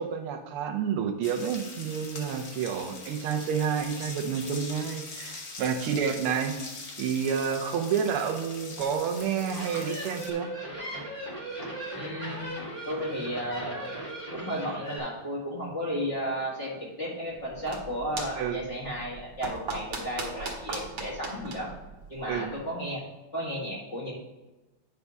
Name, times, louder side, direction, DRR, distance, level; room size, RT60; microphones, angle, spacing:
voice 1, 0.0-6.6 7.0-10.5 18.4-18.7 22.3-22.5, right 7 dB, 90° right, 4 dB, 1.7 m, -29 dB
sound 1, 1.2-10.3, left 3 dB, 45° left, 1.2 m, -42 dB
sound 2, 9.2-15.0, right 1 dB, 20° right, 1.9 m, -38 dB
voice 2, 11.9-12.4 12.8-13.9 14.3-21.7 22.1-23.0 23.3-24.2, equal, 30° left, -7 dB, 2.4 m, -34 dB
sound 3, 17.3-22.7, right 3 dB, 70° right, 2.2 m, -39 dB
9.7 x 3.5 x 5.3 m, 1.1 s
omnidirectional pair, 2.4 m